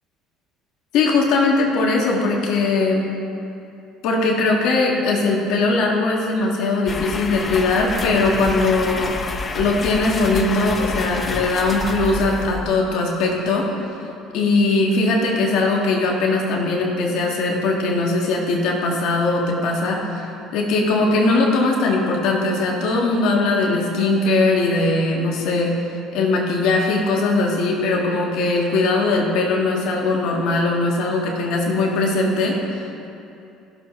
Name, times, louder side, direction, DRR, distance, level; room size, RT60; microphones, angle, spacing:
voice 1, 0.9-3.1 4.0-9.2 9.5-13.7 14.3-20.3 20.5-25.7 26.1-33.1, left 3 dB, 70° left, -1 dB, 1.6 m, -20 dB
sound 1, 6.9-12.9, left 3 dB, 35° left, 0.7 m, -28 dB
15.5 x 6.8 x 3.1 m, 2.7 s
supercardioid pair, 80°, 0 cm